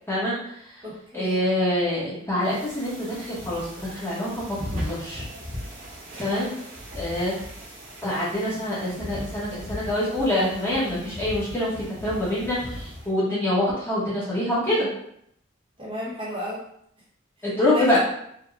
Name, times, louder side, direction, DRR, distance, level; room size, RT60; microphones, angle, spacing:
voice 1, 0.1-0.8 1.1-5.2 6.2-6.5 6.9-7.3 8.0-14.9 17.4-18.0, left 1 dB, 10° left, -9 dB, 0.8 m, -25 dB
voice 2, 0.8-1.5 15.8-16.6 17.4-17.5 17.7-18.0, left 1 dB, 25° right, -7 dB, 0.8 m, -33 dB
sound 1, 2.4-13.1, equal, 70° right, 1.2 m, -38 dB
3.6 x 2.1 x 2.3 m, 0.72 s
head